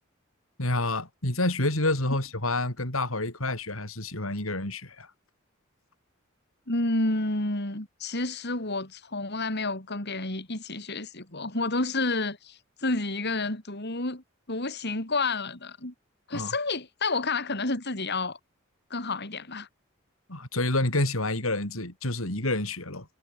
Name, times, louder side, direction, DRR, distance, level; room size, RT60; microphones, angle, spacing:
voice 1, 0.6-5.1 16.3-16.5 20.3-23.1, left 2 dB, 85° left, 6.9 m, -28 dB
voice 2, 6.7-14.2 14.5-15.9 16.3-18.4 18.9-19.7, left 2 dB, 55° left, 4.9 m, -30 dB
head